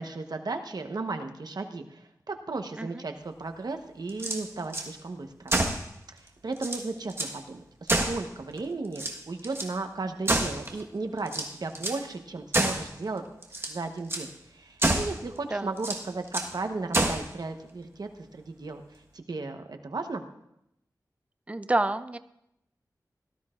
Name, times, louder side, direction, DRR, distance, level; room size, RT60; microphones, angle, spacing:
voice 1, 0.0-5.5 6.4-13.2 13.7-18.8 19.1-20.2, right 3 dB, 70° right, 6 dB, 1.0 m, -35 dB
sound 1, 4.1-4.9 5.5-5.9 6.3-6.4 6.6-7.4 7.9-8.6 8.9-9.7 10.3-10.8 11.3-12.0 12.5-12.9 13.4-13.8 14.1-14.3 14.8-15.2 15.8-16.5 16.9-17.3, right 2 dB, 35° right, 1.4 m, -28 dB
voice 2, 21.5-22.2, right 2 dB, 20° right, 12 dB, 0.5 m, -28 dB
17.5 x 12.5 x 2.5 m, 0.79 s
wide cardioid pair, 75°, 7 cm